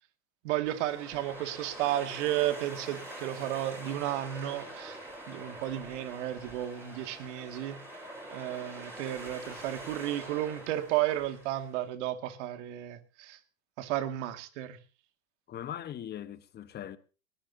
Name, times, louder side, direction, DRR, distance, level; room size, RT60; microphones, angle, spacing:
voice 1, 0.4-5.0 5.3-7.8 8.3-13.4 13.8-14.8, right 13 dB, 60° right, 2.2 m, -33 dB
sound 1, 0.7-11.8, right 1 dB, 5° right, 7.9 m, -45 dB
voice 2, 15.5-17.0, left 10 dB, 25° left, 1.3 m, -40 dB
20.5 x 18.5 x 2.8 m
hypercardioid pair, 120°, 40 cm